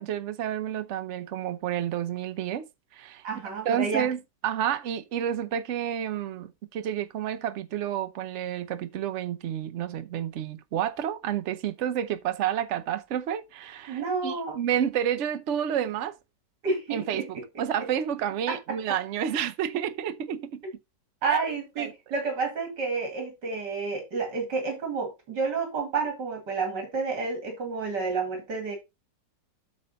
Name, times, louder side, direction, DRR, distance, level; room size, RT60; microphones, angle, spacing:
voice 1, 0.0-2.6 2.9-3.2 3.6-16.2 16.9-20.6 21.3-21.4 21.8-21.9, right 10 dB, 55° right, 0.9 m, -30 dB
voice 2, 3.2-4.1 13.9-14.6 16.6-17.3 18.5-18.6 21.2-28.7, right 4 dB, 70° right, 2.8 m, -30 dB
8.6 x 6.5 x 4.1 m
omnidirectional pair, 1.9 m